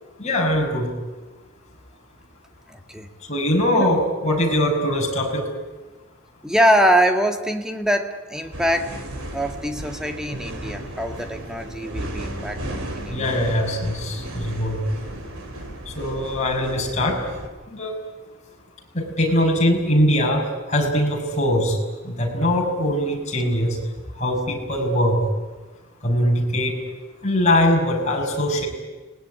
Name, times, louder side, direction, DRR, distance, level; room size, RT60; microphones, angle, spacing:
voice 1, 0.2-0.9 3.3-5.5 13.1-14.8 15.9-17.3 17.7-17.9 18.9-21.8 22.0-23.8 24.1-25.3 26.0-26.8 27.2-28.7, left 1 dB, 35° left, -1 dB, 6.2 m, -21 dB
voice 2, 2.7-3.1 3.7-3.9 6.4-9.0 9.3-13.2, equal, 5° right, 5 dB, 1.9 m, -23 dB
sound 1, 8.5-17.5, right 1 dB, 85° right, 4.3 m, -34 dB
30.0 x 19.5 x 10.0 m, 1.3 s
head